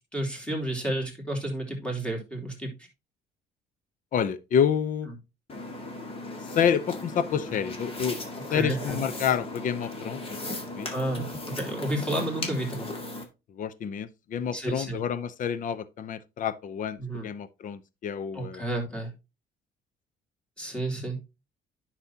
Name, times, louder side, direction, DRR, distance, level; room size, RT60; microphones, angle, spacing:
voice 1, 0.1-2.7 8.5-9.0 10.9-11.3 11.5-12.9 14.5-15.0 17.0-17.3 18.3-19.1 20.6-21.2, right 1 dB, 5° left, 3.0 m, -31 dB
voice 2, 4.1-5.1 6.5-8.2 8.5-10.4 10.7-10.9 13.6-18.6, left 8 dB, 50° left, 0.7 m, -28 dB
sound 1, 5.5-13.2, left 2 dB, 35° left, 2.1 m, -37 dB
9.9 x 6.0 x 2.8 m
cardioid pair, 110°, 17 cm